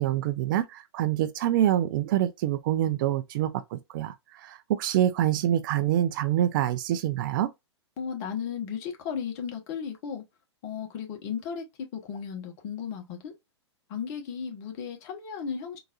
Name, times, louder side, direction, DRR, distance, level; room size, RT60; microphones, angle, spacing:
voice 1, 0.0-4.1 4.4-7.5, right 12 dB, 45° right, 0.5 m, -26 dB
voice 2, 8.0-10.2 10.6-13.3 13.9-15.8, left 7 dB, 40° left, 1.2 m, -35 dB
3.8 x 2.6 x 2.4 m
hypercardioid pair, 115°, 15 cm